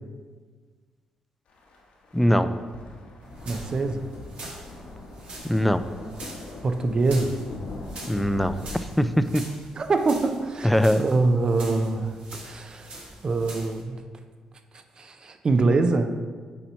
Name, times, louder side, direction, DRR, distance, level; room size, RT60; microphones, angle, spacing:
sound 1, 1.5-8.7, left 2 dB, 80° left, 1.2 m, -42 dB
voice 1, 2.1-2.6 5.4-5.8 8.1-9.4 10.6-11.0, equal, 5° left, 11 dB, 0.3 m, -22 dB
sound 2, 3.2-13.8, right 2 dB, 65° right, 1.7 m, -44 dB
voice 2, 3.4-4.1 6.6-7.4 9.8-12.1 12.4-12.9 13.2-14.0 14.7-16.2, right 3 dB, 40° right, 6 dB, 0.6 m, -24 dB
7.1 x 2.9 x 5.6 m, 1.5 s
cardioid pair, 80°, 2 cm